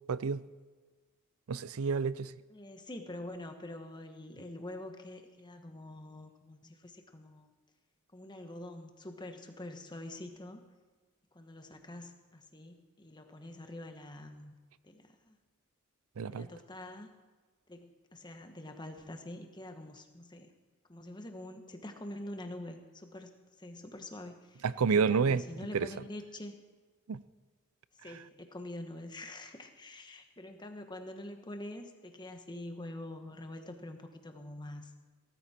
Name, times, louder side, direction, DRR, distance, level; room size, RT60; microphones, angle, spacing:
voice 1, 0.1-0.4 1.5-2.3 16.2-16.5 24.6-25.4 25.7-25.9 27.1-27.2, right 5 dB, 80° right, 17 dB, 0.5 m, -29 dB
voice 2, 2.5-7.5 8.1-10.6 11.3-14.5 14.8-15.4 16.3-17.1 17.7-20.5 20.9-23.3 23.6-24.6 24.9-26.5 28.0-34.9, left 1 dB, 20° left, 6 dB, 1.3 m, -45 dB
17.5 x 14.0 x 4.4 m, 1.4 s
head